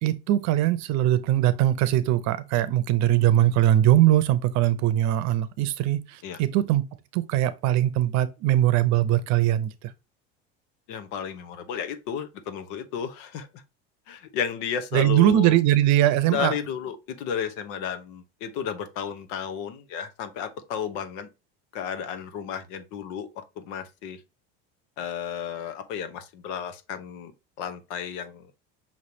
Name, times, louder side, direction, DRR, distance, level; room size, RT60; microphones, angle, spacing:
voice 1, 0.0-6.8 7.1-9.9 14.9-16.5, right 13 dB, 60° right, 0.7 m, -21 dB
voice 2, 10.9-13.6 14.1-15.6 16.3-21.3 21.7-24.2 25.0-27.3 27.6-28.5, left 8 dB, 70° left, 1.1 m, -33 dB
5.7 x 3.2 x 2.8 m
supercardioid pair, 110°, 31 cm